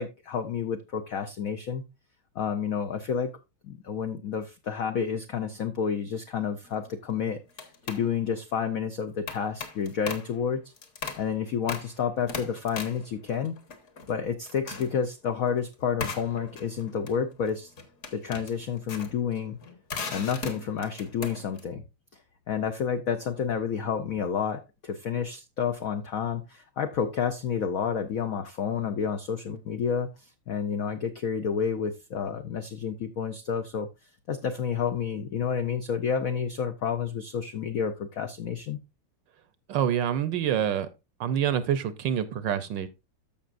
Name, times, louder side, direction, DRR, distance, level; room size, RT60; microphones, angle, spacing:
voice 1, 0.0-1.8 2.3-3.3 3.6-7.4 7.8-10.7 11.2-13.6 14.1-17.7 18.1-19.6 20.1-21.8 22.5-33.9 34.3-38.8, left 7 dB, 80° left, 0.7 m, -30 dB
sound 1, 6.6-7.0 7.5-8.1 9.3-10.4 10.8-11.3 11.7-12.0 12.3-14.2 14.5-15.0 16.0-21.6, left 4 dB, 45° left, 1.7 m, -38 dB
voice 2, 39.7-40.9 41.2-42.9, right 9 dB, 70° right, 1.2 m, -26 dB
14.0 x 5.8 x 2.5 m
omnidirectional pair, 2.3 m